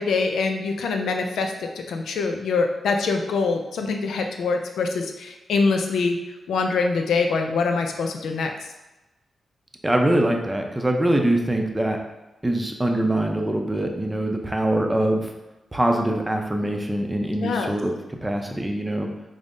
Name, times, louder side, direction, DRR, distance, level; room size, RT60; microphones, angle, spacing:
voice 1, 0.0-6.2 6.5-8.5 17.4-17.7, left 4 dB, 85° left, 4 dB, 0.3 m, -24 dB
voice 2, 9.8-12.0 12.4-15.3 15.7-19.1, right 1 dB, 15° right, 2 dB, 0.5 m, -23 dB
5.1 x 2.0 x 2.5 m, 1.0 s
cardioid pair, 60°, 0 cm